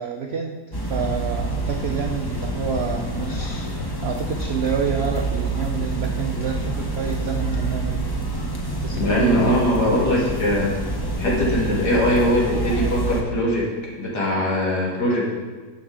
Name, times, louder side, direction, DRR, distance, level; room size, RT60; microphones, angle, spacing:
voice 1, 0.0-8.0 8.8-10.1, right 6 dB, 70° right, 3 dB, 0.6 m, -28 dB
sound 1, 0.7-13.2, right 2 dB, 25° left, 0.5 m, -27 dB
voice 2, 8.9-10.7 11.2-13.6 14.0-15.3, left 1 dB, 70° left, -4 dB, 2.5 m, -21 dB
10.5 x 6.3 x 3.8 m, 1.4 s
omnidirectional pair, 1.8 m